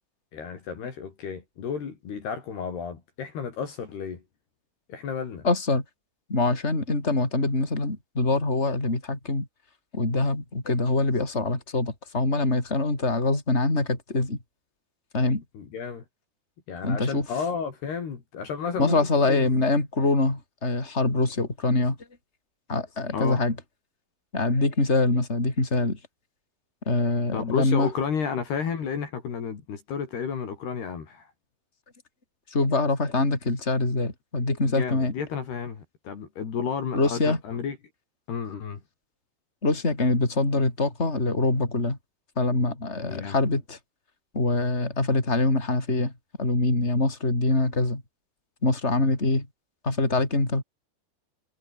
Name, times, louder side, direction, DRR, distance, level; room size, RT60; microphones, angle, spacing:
voice 1, 0.3-4.2 4.9-5.5 15.5-16.0 16.7-19.6 23.1-23.4 27.3-31.3 34.7-37.8 38.3-38.8 43.1-43.4, left 6 dB, 55° left, 5.4 m, -32 dB
voice 2, 5.4-5.8 6.3-9.5 9.9-14.4 15.1-15.4 16.8-17.3 18.8-22.0 22.7-23.6 24.3-26.0 26.9-27.9 32.5-35.1 36.9-37.4 39.6-42.0 42.4-43.8 44.3-46.1 46.4-48.0 48.6-49.5 49.8-50.6, left 2 dB, 15° left, 5.7 m, -24 dB
omnidirectional pair, 5.6 m